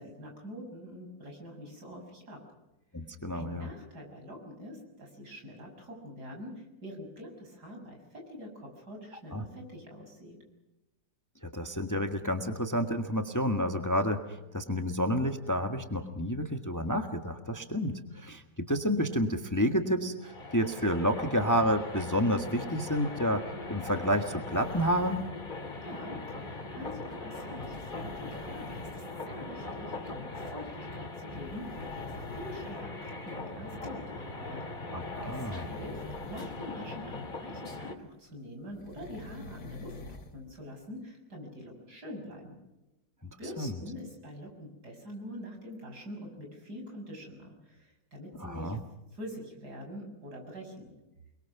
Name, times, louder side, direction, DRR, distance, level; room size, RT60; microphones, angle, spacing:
voice 1, 0.0-2.4 3.3-10.4 25.8-34.6 35.2-42.6 43.4-48.8 49.1-50.9, equal, 70° right, 2 dB, 7.4 m, -45 dB
voice 2, 2.9-3.7 9.3-9.4 11.4-23.4 23.7-25.2 34.9-35.7 43.2-43.3 43.6-43.8 48.4-48.8, equal, 10° left, 6 dB, 1.5 m, -30 dB
sound 1, 20.2-38.0, left 2 dB, 30° left, 2.5 m, -40 dB
sound 2, 24.5-25.3 27.6-29.0 30.4-30.5 31.3-32.8 33.5-33.6 34.9-36.6 36.9-37.1 38.7-40.4 40.9-41.0, left 3 dB, 60° left, 2.6 m, -47 dB
29.5 x 22.0 x 6.1 m, 0.98 s
omnidirectional pair, 1.8 m